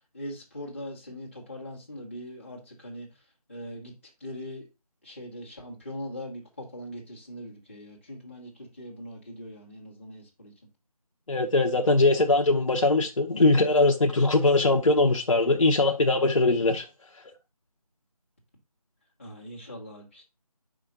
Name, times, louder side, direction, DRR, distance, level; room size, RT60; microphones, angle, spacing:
voice 1, 0.1-3.1 3.5-3.9 4.2-4.6 5.0-10.5 19.2-20.2, equal, 20° left, 1.3 m, -41 dB
voice 2, 11.3-16.8, left 2 dB, 55° left, 0.7 m, -21 dB
5.2 x 5.0 x 3.7 m
figure-of-eight pair, 175°, 20 cm